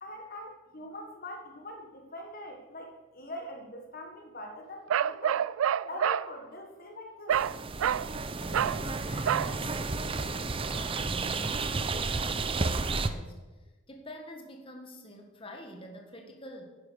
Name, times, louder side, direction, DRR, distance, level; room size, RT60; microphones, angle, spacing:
voice 1, 0.0-5.4 5.9-7.4, left 1 dB, 45° left, 3 dB, 1.5 m, -43 dB
Bark, 4.9-6.3 7.3-7.5 7.8-8.1 8.5-8.8 9.3-9.5, right 9 dB, 80° right, 0.3 m, -27 dB
sound 1, 7.3-13.1, right 3 dB, 25° right, 0.5 m, -32 dB
voice 2, 8.4-13.4 13.9-16.7, equal, 25° left, 2 dB, 1.7 m, -46 dB
11.0 x 9.8 x 6.5 m, 1.2 s
head